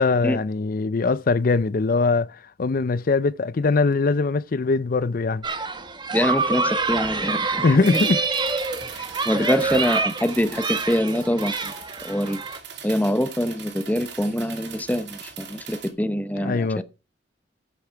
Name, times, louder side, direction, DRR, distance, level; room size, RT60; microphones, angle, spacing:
voice 1, 0.0-5.4 7.6-8.2 9.3-9.5 16.4-16.8, left 3 dB, 50° left, 0.5 m, -22 dB
sound 1, 5.4-12.6, right 3 dB, 25° right, 1.2 m, -26 dB
voice 2, 6.1-7.7 7.9-8.0 9.0-11.7 12.0-12.4 12.8-16.8, equal, 10° left, 0.7 m, -25 dB
sound 2, 7.8-15.9, right 7 dB, 65° right, 2.5 m, -41 dB
11.0 x 8.4 x 4.6 m
head